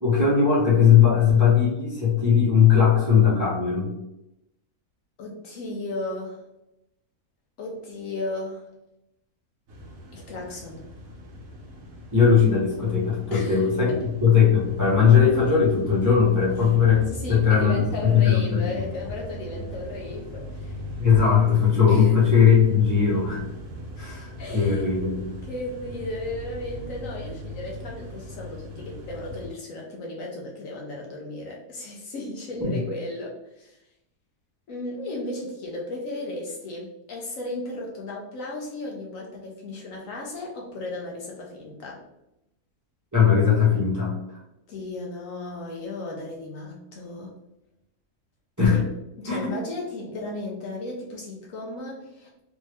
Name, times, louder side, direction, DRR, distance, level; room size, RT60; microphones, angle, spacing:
voice 1, 0.0-3.9 12.1-17.0 17.3-18.6 21.0-23.4 24.0-25.2 32.6-32.8 43.1-44.1 48.6-48.8 49.3-49.5, left 7 dB, 15° right, -7 dB, 0.8 m, -19 dB
voice 2, 5.2-6.4 7.6-8.7 10.1-10.8 13.3-14.0 17.1-20.8 21.3-21.4 21.9-22.3 24.4-24.8 25.5-33.8 34.7-42.0 44.7-47.3 48.7-48.9 49.2-52.4, left 2 dB, 65° left, -2 dB, 1.0 m, -35 dB
sound 1, 9.7-29.5, equal, 60° right, 1.0 m, -39 dB
3.2 x 2.6 x 3.3 m, 0.87 s
omnidirectional pair, 1.6 m